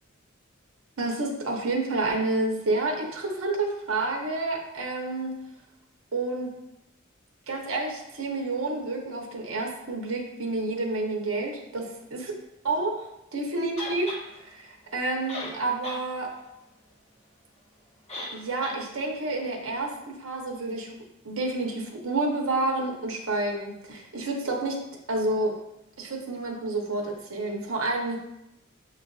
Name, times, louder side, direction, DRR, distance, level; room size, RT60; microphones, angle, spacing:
voice 1, 1.0-5.4 6.1-6.5 7.5-11.8 12.1-12.2 12.6-16.3 18.3-21.0 21.2-24.8 25.1-25.6 26.0-28.2, right 2 dB, 80° right, 1 dB, 0.8 m, -29 dB
sound 1, 13.8-14.2 15.0-15.1 15.3-16.0 16.4-16.5 18.1-18.4 18.6-18.8, left 1 dB, 30° left, 1.0 m, -36 dB
7.1 x 2.5 x 2.4 m, 0.86 s
head